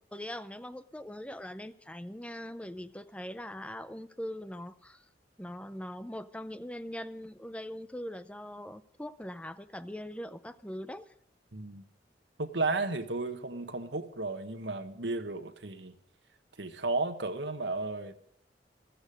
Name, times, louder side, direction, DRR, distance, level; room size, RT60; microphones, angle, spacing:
voice 1, 0.1-5.1 5.4-11.1, left 1 dB, 5° left, 13 dB, 0.6 m, -41 dB
voice 2, 11.5-11.8 12.4-16.0 16.6-18.2, right 3 dB, 80° right, 8 dB, 1.4 m, -33 dB
15.5 x 14.0 x 5.2 m, 0.69 s
head